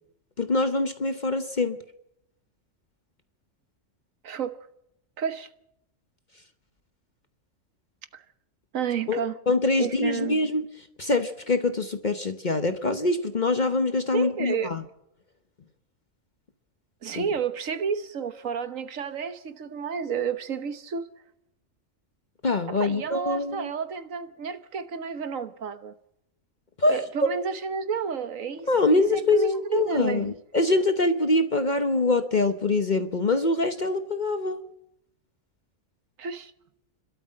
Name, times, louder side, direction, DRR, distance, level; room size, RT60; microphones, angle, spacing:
voice 1, 0.4-1.8 9.1-10.7 11.0-14.8 17.2-17.3 22.4-23.7 26.8-27.0 28.7-34.6, left 2 dB, 40° left, 1.0 m, -24 dB
voice 2, 4.2-4.6 5.2-5.5 8.1-8.2 8.7-9.4 9.8-10.4 14.1-14.7 17.0-21.1 22.7-25.9 26.9-30.3 36.2-36.5, right 6 dB, 80° right, 1.5 m, -31 dB
29.5 x 13.0 x 7.6 m
omnidirectional pair, 1.4 m